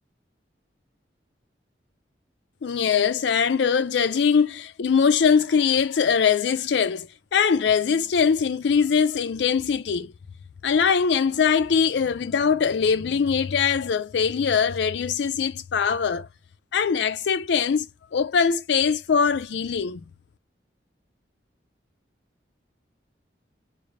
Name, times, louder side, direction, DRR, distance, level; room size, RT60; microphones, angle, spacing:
voice 1, 2.6-10.1 10.6-16.3 16.7-20.0, left 6 dB, 75° left, 0.4 m, -22 dB
3.8 x 2.5 x 3.2 m
head